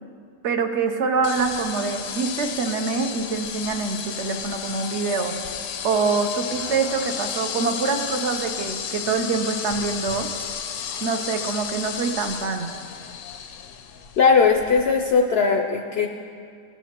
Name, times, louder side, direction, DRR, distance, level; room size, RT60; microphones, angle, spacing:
voice 1, 0.4-5.4 5.8-10.3 11.0-12.7, right 4 dB, 60° right, 6 dB, 0.9 m, -25 dB
sound 1, 1.2-15.1, left 7 dB, 85° left, 1.1 m, -33 dB
voice 2, 14.2-16.1, left 5 dB, 65° left, 2 dB, 0.6 m, -18 dB
16.5 x 7.1 x 2.9 m, 2.3 s
omnidirectional pair, 1.5 m